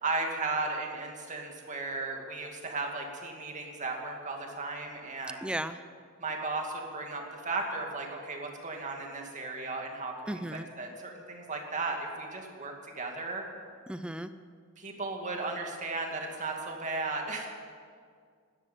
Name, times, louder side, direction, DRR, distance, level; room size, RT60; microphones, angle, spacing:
voice 1, 0.0-5.5 6.2-10.4 10.8-13.4 14.8-17.5, right 3 dB, 35° right, 1 dB, 2.3 m, -35 dB
voice 2, 5.4-5.8 10.3-10.7 13.9-14.3, right 1 dB, 5° right, 11 dB, 0.4 m, -35 dB
12.5 x 12.0 x 9.3 m, 2.1 s
head